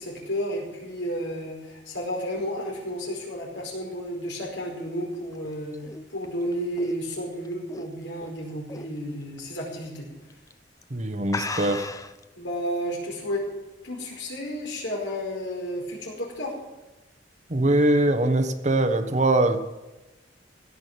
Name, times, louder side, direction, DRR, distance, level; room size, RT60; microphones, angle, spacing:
voice 1, 0.0-5.8 6.1-10.1 12.3-13.4 13.8-16.5, equal, 80° left, -1 dB, 5.0 m, -32 dB
sound 1, 5.1-8.3 8.7-9.0 9.4-9.5 10.3-10.5 10.8-10.9 11.3-12.2, left 3 dB, 20° left, 0.8 m, -35 dB
voice 2, 10.9-11.9 17.5-19.6, right 2 dB, 40° right, 8 dB, 1.2 m, -22 dB
16.5 x 6.3 x 9.1 m, 1.1 s
head